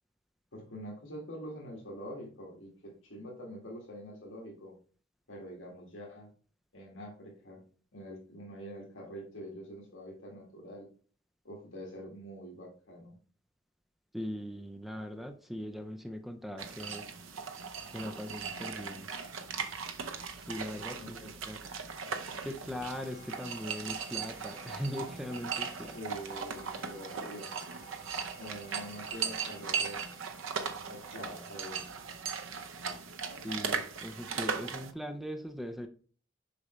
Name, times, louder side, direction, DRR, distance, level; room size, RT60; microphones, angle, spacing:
voice 1, 0.5-4.7 5.3-6.3 6.7-7.6 7.9-10.9 11.4-13.2 21.0-21.4 25.7-27.5 28.4-30.1 30.9-31.8, equal, 70° left, -2 dB, 1.8 m, -45 dB
voice 2, 14.1-17.1 17.9-19.1 20.5-21.7 22.4-26.0 33.4-35.9, equal, ahead, 6 dB, 0.4 m, -40 dB
sound 1, 16.6-34.9, right 6 dB, 75° right, 0.7 m, -38 dB
sound 2, 22.8-32.2, left 1 dB, 50° left, 2.2 m, -56 dB
6.7 x 5.2 x 3.0 m, 0.42 s
head